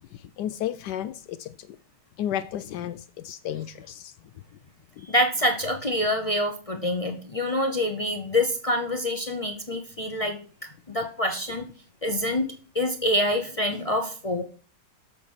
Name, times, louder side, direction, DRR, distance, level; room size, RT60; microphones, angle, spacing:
voice 1, 0.1-1.8 2.2-4.1 5.0-5.1, left 11 dB, 75° left, 1.1 m, -33 dB
voice 2, 5.1-10.4 10.9-11.7 12.0-12.5 12.7-14.4, left 1 dB, 45° left, 0.4 m, -26 dB
8.6 x 6.8 x 4.6 m
omnidirectional pair, 1.9 m